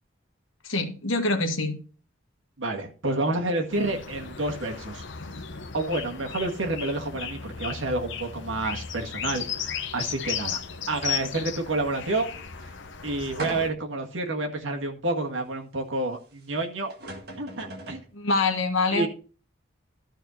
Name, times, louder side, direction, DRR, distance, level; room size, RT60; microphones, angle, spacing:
voice 1, 0.6-1.8 18.1-19.1, left 3 dB, 85° left, 1.5 m, -25 dB
voice 2, 2.6-5.0 5.7-10.6 10.9-12.3 13.0-16.9 17.4-18.0 18.9-19.1, right 2 dB, 75° right, 1.8 m, -29 dB
sound 1, 3.7-13.7, left 7 dB, 65° left, 0.8 m, -35 dB
sound 2, 13.4-14.0 14.6-14.7 16.5-16.6 16.9-18.1, right 1 dB, 50° right, 1.8 m, -37 dB
12.5 x 4.4 x 5.6 m
head